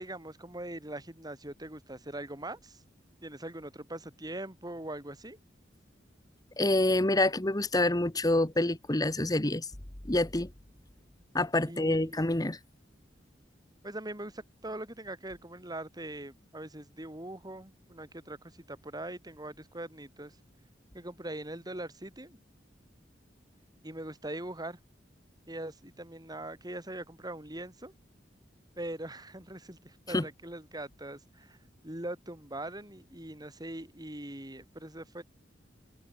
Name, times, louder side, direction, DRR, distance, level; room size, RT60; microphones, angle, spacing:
voice 1, 0.0-2.8 3.2-5.4 11.7-12.2 13.8-20.4 20.9-22.4 23.8-24.8 25.5-27.9 28.8-31.6 31.8-35.2, right 1 dB, 20° right, 5.2 m, -42 dB
voice 2, 6.6-9.7 10.1-10.5 11.3-12.6 30.1-30.3, left 2 dB, 20° left, 1.2 m, -27 dB
open air
head